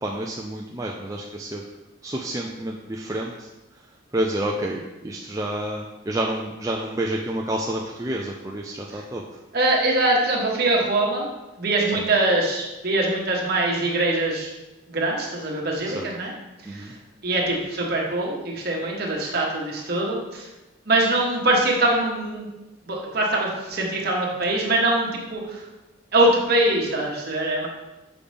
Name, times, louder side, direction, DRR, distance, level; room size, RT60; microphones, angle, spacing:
voice 1, 0.0-1.6 2.0-3.5 4.1-9.2 11.9-12.1 15.9-16.1 16.7-16.9, right 1 dB, 15° right, -1 dB, 0.3 m, -29 dB
voice 2, 9.5-11.3 11.6-14.5 14.9-16.3 16.7-16.9 17.2-20.4 20.9-22.5 22.9-25.6 26.1-27.7, right 2 dB, 50° right, -2 dB, 1.3 m, -23 dB
6.8 x 5.2 x 3.4 m, 1.0 s
head